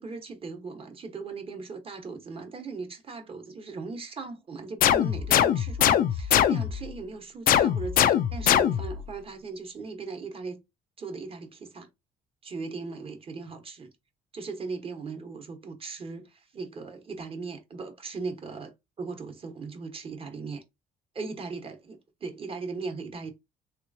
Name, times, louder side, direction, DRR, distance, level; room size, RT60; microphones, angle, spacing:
voice 1, 0.0-10.6 11.0-11.9 12.4-13.9 14.3-20.6 21.1-23.3, right 4 dB, 35° right, 1.0 m, -38 dB
sound 1, 4.8-6.9 7.5-9.0, left 10 dB, 55° left, 0.4 m, -22 dB
3.1 x 3.0 x 2.6 m
cardioid pair, 110°, 17 cm